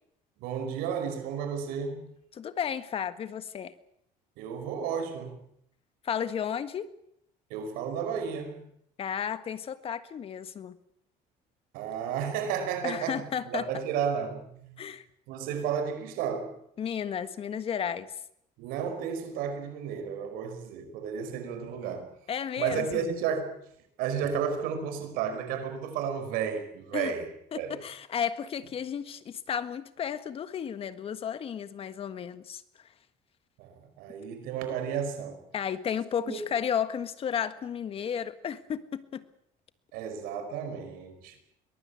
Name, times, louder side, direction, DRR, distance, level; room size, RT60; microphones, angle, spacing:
voice 1, 0.4-2.1 4.4-5.4 7.5-8.6 11.7-14.8 15.3-16.6 18.6-22.1 22.6-23.5 24.0-27.3 27.5-27.8 33.6-35.4 36.3-36.4 39.9-41.4, right 7 dB, 90° right, 5.2 m, -32 dB
voice 2, 2.3-3.7 6.0-6.9 9.0-10.8 12.8-13.6 14.8-15.0 16.8-18.1 22.3-23.1 26.9-27.1 27.5-32.6 35.5-39.2, left 8 dB, 40° left, 1.6 m, -33 dB
23.0 x 19.0 x 8.5 m
cardioid pair, 135°, 15 cm